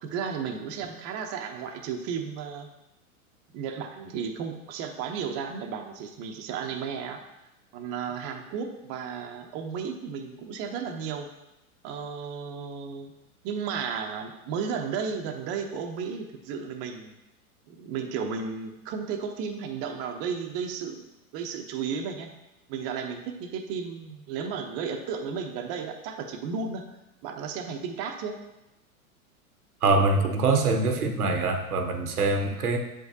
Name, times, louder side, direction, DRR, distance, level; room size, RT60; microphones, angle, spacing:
voice 1, 0.0-2.7 3.5-7.2 7.7-11.3 11.8-13.1 13.4-17.2 17.7-21.0 21.3-22.3 22.7-26.9 27.2-28.4, right 6 dB, 35° right, 4 dB, 0.7 m, -33 dB
voice 2, 29.8-32.8, right 3 dB, 90° right, 5 dB, 0.9 m, -24 dB
7.5 x 4.8 x 2.7 m, 0.93 s
hypercardioid pair, 105°, 44 cm